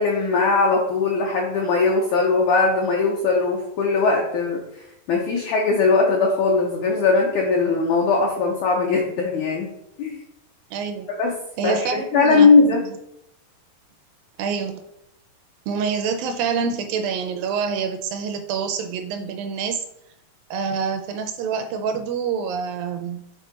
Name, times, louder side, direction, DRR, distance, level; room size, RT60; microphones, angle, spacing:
voice 1, 0.0-9.7 10.0-10.2 11.2-12.8, left 4 dB, 85° left, 0 dB, 1.6 m, -20 dB
voice 2, 10.7-11.1 11.6-12.5 14.4-14.8 15.7-19.8 20.5-23.3, right 6 dB, 80° right, 7 dB, 2.1 m, -26 dB
7.6 x 3.5 x 4.0 m, 0.80 s
omnidirectional pair, 4.3 m